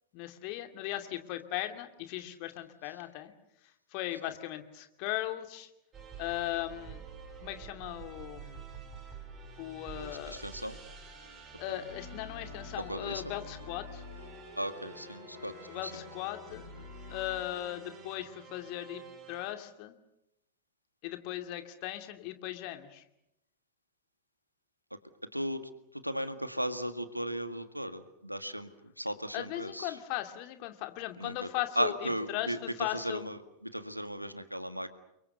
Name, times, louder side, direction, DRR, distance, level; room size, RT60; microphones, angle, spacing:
voice 1, 0.1-3.3 3.9-5.7 6.2-7.0 7.4-8.6 9.6-10.4 11.6-14.0 15.7-16.6 17.1-19.0 19.3-19.9 21.0-23.0 29.3-33.3, left 15 dB, 45° left, 7 dB, 2.5 m, -38 dB
sound 1, 5.9-19.5, right 6 dB, 25° right, 5.9 m, -50 dB
voice 2, 9.9-10.8 11.7-11.8 12.8-13.2 14.6-15.6 15.8-15.9 24.9-30.0 31.2-31.5 31.8-34.9, equal, 90° right, 11 dB, 1.8 m, -36 dB
sound 2, 11.9-17.4, left 3 dB, 75° left, 7.8 m, -48 dB
29.5 x 23.5 x 6.9 m, 0.81 s
figure-of-eight pair, 90°, 0 cm